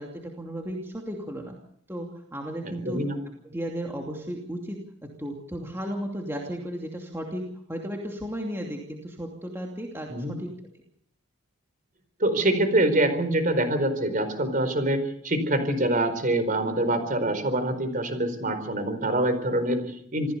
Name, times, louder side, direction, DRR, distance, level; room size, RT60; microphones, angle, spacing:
voice 1, 0.0-1.5 1.9-3.0 3.4-4.8 5.2-7.4 7.7-10.5, equal, 10° right, 0 dB, 2.7 m, -34 dB
voice 2, 2.8-3.2 10.1-10.3 12.2-20.3, right 1 dB, 40° right, 10 dB, 4.5 m, -25 dB
27.5 x 16.0 x 7.0 m, 0.69 s
head